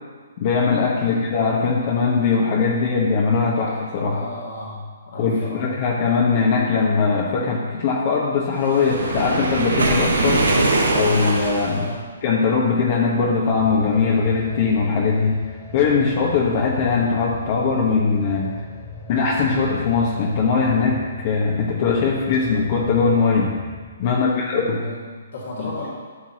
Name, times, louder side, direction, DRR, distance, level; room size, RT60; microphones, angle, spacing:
voice 1, 0.4-4.2 5.2-10.5 10.9-11.9 12.2-15.4 15.7-18.6 19.1-23.5 24.0-24.8 25.6-25.7, left 5 dB, 45° left, -3 dB, 1.4 m, -20 dB
voice 2, 4.1-5.8 11.7-12.1 24.1-25.9, left 1 dB, 60° left, -7 dB, 2.4 m, -35 dB
Waves surf, 8.6-11.9, right 2 dB, 85° right, 1.5 m, -22 dB
sound 1, 13.5-23.9, left 4 dB, 30° left, 2.3 m, -38 dB
13.0 x 6.0 x 3.0 m, 1.5 s
hypercardioid pair, 140°, 0 cm